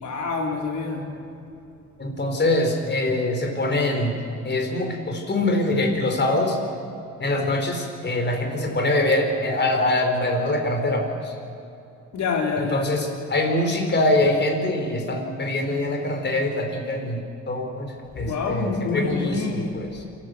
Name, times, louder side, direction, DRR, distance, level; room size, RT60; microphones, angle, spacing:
voice 1, 0.0-1.1 12.1-12.9 18.1-19.8, left 4 dB, 65° left, 1 dB, 4.4 m, -26 dB
voice 2, 2.0-4.2 4.4-6.6 7.2-11.3 12.7-17.9 18.1-19.9, left 1 dB, 35° left, 3 dB, 4.6 m, -24 dB
27.5 x 13.5 x 8.1 m, 2.7 s
cardioid pair, 90°, 30 cm